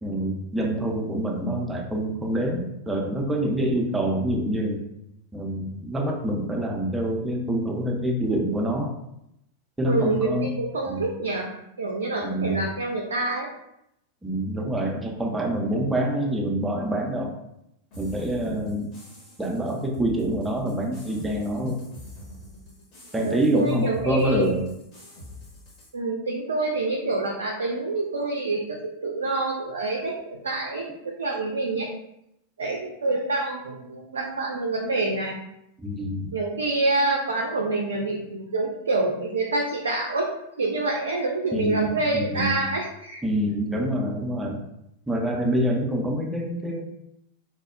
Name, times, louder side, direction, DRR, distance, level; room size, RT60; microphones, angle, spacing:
voice 1, 0.0-4.8 5.3-8.9 9.8-10.5 10.9-11.1 12.2-12.6 14.2-17.3 18.0-18.9 19.4-21.8 23.1-24.6 35.8-36.4 41.5-42.6 43.2-44.6 45.1-46.8, right 1 dB, 10° right, 0 dB, 0.4 m, -26 dB
voice 2, 9.9-13.5 23.1-24.5 25.9-30.1 30.4-31.9 32.6-35.4 36.3-40.3 40.6-43.2, right 2 dB, 70° right, -1 dB, 0.3 m, -27 dB
sound 1, 17.9-25.9, left 1 dB, 40° left, 1.0 m, -45 dB
2.9 x 2.0 x 2.4 m, 0.81 s
figure-of-eight pair, 90°, 0 cm